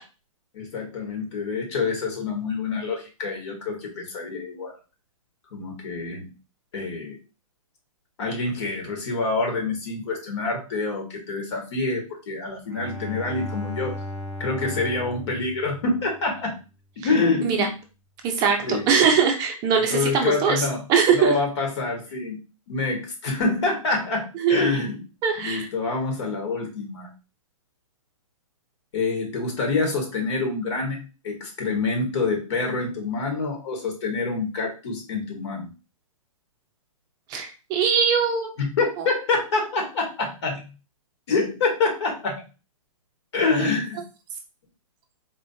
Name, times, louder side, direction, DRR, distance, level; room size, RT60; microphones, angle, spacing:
voice 1, 0.5-4.8 5.5-6.3 6.7-7.2 8.2-14.0 14.4-16.6 17.0-17.7 18.6-18.8 19.7-20.8 21.1-22.4 22.7-25.0 25.4-27.1 28.9-31.0 31.2-35.7 38.6-40.7 41.3-42.4 43.3-44.0, left 3 dB, 55° left, 2 dB, 1.4 m, -26 dB
Bowed string instrument, 12.6-16.4, left 1 dB, 5° right, 1.2 m, -36 dB
voice 2, 18.2-21.3 24.4-24.6 25.2-25.7 37.3-38.5 39.0-39.1, right 6 dB, 20° right, 4 dB, 0.6 m, -21 dB
4.1 x 3.0 x 2.7 m, 0.31 s
hypercardioid pair, 145°, 18 cm